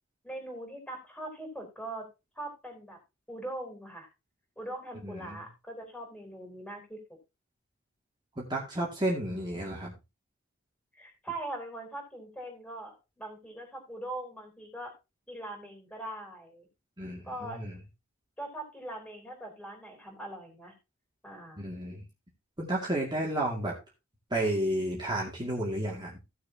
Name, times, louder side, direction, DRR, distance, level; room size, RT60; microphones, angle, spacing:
voice 1, 0.2-2.1 2.4-3.0 3.3-4.1 4.6-7.0 10.9-14.9 15.3-16.7 17.2-17.6 18.4-20.7 21.2-21.7, right 1 dB, 5° left, 2 dB, 3.8 m, -41 dB
voice 2, 5.0-5.4 8.4-9.9 17.0-17.8 21.6-22.0 22.6-23.7 24.3-26.2, right 1 dB, 20° right, -3 dB, 2.4 m, -32 dB
16.5 x 6.7 x 2.9 m, 0.26 s
head